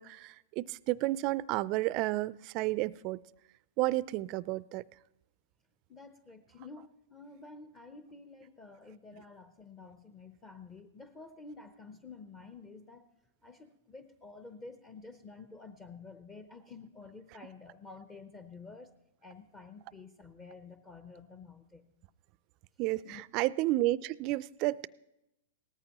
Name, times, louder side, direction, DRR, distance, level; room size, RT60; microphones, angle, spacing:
voice 1, 0.0-3.2 3.8-4.8 22.8-24.9, right 18 dB, 45° right, 0.3 m, -31 dB
voice 2, 5.9-13.1 13.4-18.9 19.2-22.0 23.0-23.2, left 4 dB, 20° left, 0.7 m, -50 dB
18.0 x 14.0 x 3.0 m
hypercardioid pair, 120°, 0 cm